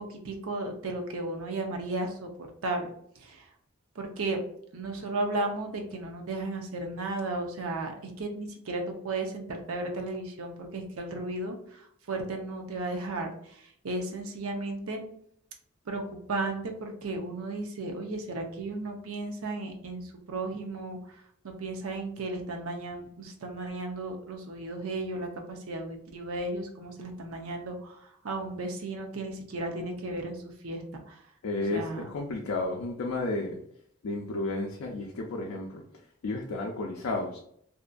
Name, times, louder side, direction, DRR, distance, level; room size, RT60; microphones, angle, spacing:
voice 1, 0.0-3.5 4.0-4.4 4.7-15.0 15.9-31.2 31.7-32.1, right 2 dB, 90° right, 3 dB, 0.6 m, -35 dB
voice 2, 31.4-33.6 34.0-35.8 36.2-37.4, left 2 dB, 85° left, -1 dB, 0.4 m, -32 dB
2.7 x 2.5 x 2.2 m, 0.67 s
head